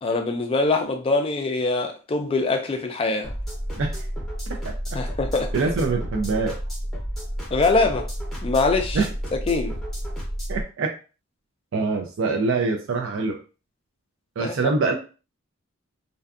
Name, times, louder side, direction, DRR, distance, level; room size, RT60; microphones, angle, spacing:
voice 1, 0.0-3.3 4.9-5.5 7.5-8.1 8.4-9.0 9.3-9.7 14.4-14.7, left 3 dB, 25° left, 0.3 m, -23 dB
sound 1, 3.2-10.6, equal, ahead, 0.7 m, -31 dB
voice 2, 4.6-5.0 5.5-6.6 8.9-9.1 10.5-10.9 11.7-13.4 14.4-15.0, right 4 dB, 65° right, 0.4 m, -24 dB
2.5 x 2.3 x 2.4 m
head